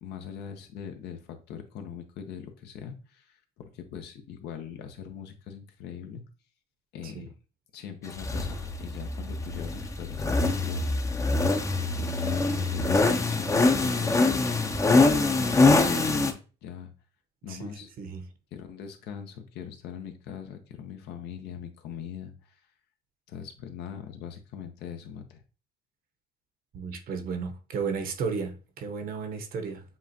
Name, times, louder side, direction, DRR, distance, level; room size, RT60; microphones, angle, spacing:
voice 1, 0.0-6.2 6.9-7.3 7.7-11.0 11.8-14.8 15.1-16.9 17.4-17.9 18.5-22.3 23.3-25.4, left 8 dB, 80° left, 0.8 m, -41 dB
sound 1, 8.2-16.3, left 3 dB, 20° left, 0.5 m, -24 dB
voice 2, 26.7-29.8, right 5 dB, 60° right, 0.9 m, -33 dB
7.2 x 2.4 x 2.7 m
cardioid pair, 110°, 17 cm